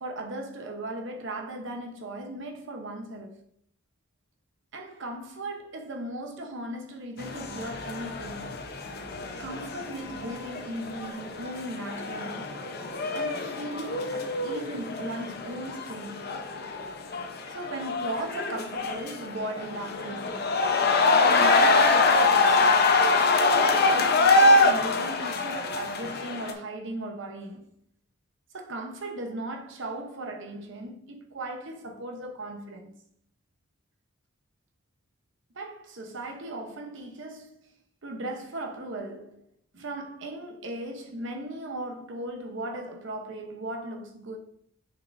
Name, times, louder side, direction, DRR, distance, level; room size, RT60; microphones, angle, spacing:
voice 1, 0.0-3.4 4.7-8.6 9.4-12.5 13.1-16.4 17.5-20.4 21.1-22.8 23.1-27.7 28.5-32.9 35.5-37.7 38.0-39.4 39.7-44.4, right 1 dB, 65° right, 0.9 m, -37 dB
sound 1, 7.2-26.5, left 3 dB, 50° left, 0.8 m, -25 dB
6.8 x 5.7 x 2.6 m
head